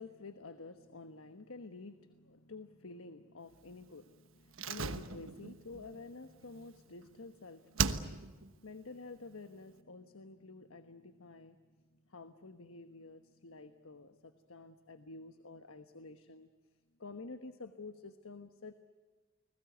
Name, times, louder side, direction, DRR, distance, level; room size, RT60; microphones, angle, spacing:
voice 1, 0.0-11.8 12.1-16.5 17.0-18.7, left 3 dB, 90° left, 9 dB, 1.2 m, -50 dB
Slam, 4.5-7.3 7.8-8.5 8.8-8.9, right 5 dB, 70° right, 1.2 m, -37 dB
30.0 x 20.5 x 8.1 m, 1.3 s
head